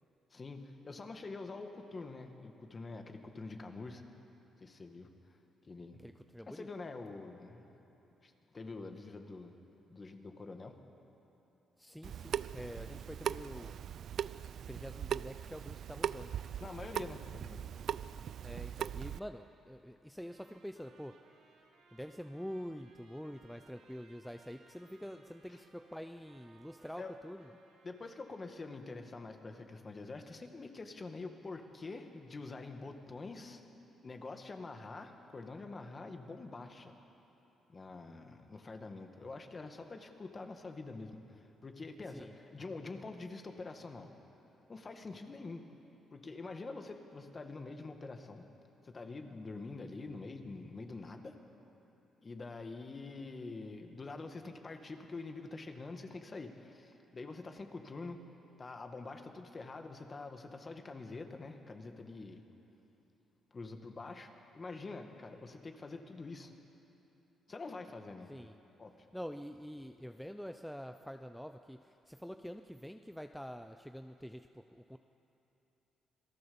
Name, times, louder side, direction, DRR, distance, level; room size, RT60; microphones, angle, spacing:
voice 1, 0.3-4.1 4.6-5.4 5.6-6.0 6.5-7.7 8.2-9.5 9.9-10.8 13.4-13.5 16.6-17.6 25.5-25.6 27.0-27.1 27.8-33.6 34.0-36.9 37.7-44.1 44.7-45.7 46.1-48.5 48.8-51.4 52.2-58.2 58.6-62.4 63.5-66.5 67.5-68.3 68.8-69.1, left 3 dB, 30° left, 5 dB, 2.0 m, -46 dB
voice 2, 6.0-6.7 11.8-13.7 14.7-16.3 18.4-21.2 21.9-27.5 42.1-42.3 68.3-68.6 69.1-75.0, equal, ahead, 7 dB, 0.6 m, -46 dB
Water tap faucet / Sink (filling or washing) / Drip, 12.0-19.2, right 9 dB, 65° right, 0.4 m, -40 dB
Trumpet, 20.2-28.7, right 4 dB, 80° right, 2.8 m, -66 dB
26.5 x 18.0 x 7.1 m, 3.0 s
cardioid pair, 90°, 0 cm